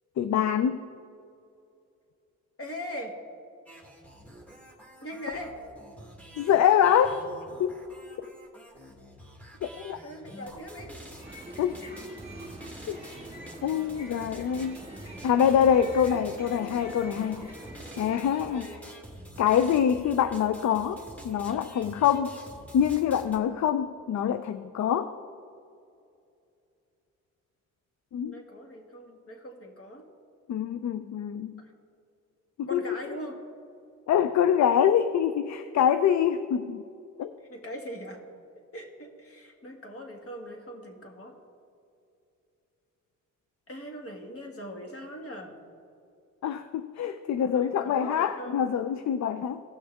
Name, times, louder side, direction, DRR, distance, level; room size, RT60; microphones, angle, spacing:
voice 1, 0.2-0.8 6.4-7.3 7.6-7.8 8.2-8.3 9.6-10.0 11.6-11.8 12.9-13.1 13.6-14.8 15.2-17.5 18.0-18.7 19.4-22.4 22.7-25.1 28.1-28.4 30.5-31.6 32.6-32.8 34.1-36.8 37.2-37.3 46.4-49.7, left 9 dB, 60° left, 11 dB, 0.4 m, -25 dB
voice 2, 2.6-3.1 5.0-5.5 10.0-10.9 15.9-16.1 18.5-18.8 28.2-30.1 31.6-31.7 32.7-33.4 37.5-38.2 38.7-41.3 43.7-45.5 47.3-48.6, equal, 45° left, 2 dB, 1.8 m, -41 dB
sound 1, 3.7-23.4, right 1 dB, 5° left, 1.5 m, -47 dB
sound 2, 11.0-18.6, right 1 dB, 20° right, 1.8 m, -45 dB
16.5 x 6.2 x 3.5 m, 2.6 s
cardioid pair, 70°, 31 cm